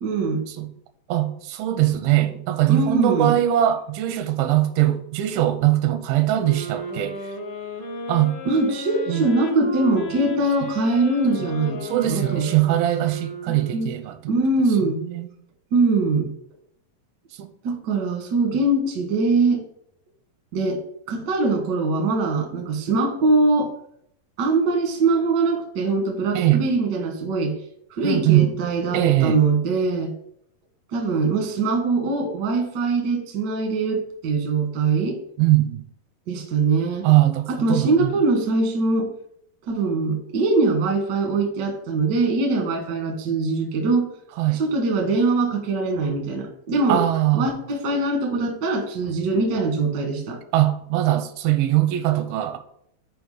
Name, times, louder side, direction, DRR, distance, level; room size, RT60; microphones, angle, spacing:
voice 1, 0.0-0.4 2.7-3.4 8.4-12.5 13.5-13.9 14.3-15.0 15.7-16.3 17.6-19.6 20.5-20.8 21.1-23.7 24.4-27.5 27.9-30.1 30.9-35.2 36.3-37.1 37.5-39.1 39.7-44.1 44.6-47.0 47.3-50.4, right 3 dB, 60° right, 1.1 m, -22 dB
voice 2, 1.1-7.2 8.1-8.4 9.1-9.3 11.8-14.3 14.9-15.3 17.3-17.5 26.3-26.6 28.0-28.6 28.9-29.4 35.4-35.9 37.0-38.1 44.4-44.6 46.9-47.5 50.5-52.6, right 14 dB, 85° right, 2.4 m, -21 dB
sound 1, 6.4-14.1, left 2 dB, 75° left, 1.1 m, -34 dB
6.3 x 4.9 x 4.9 m
omnidirectional pair, 4.2 m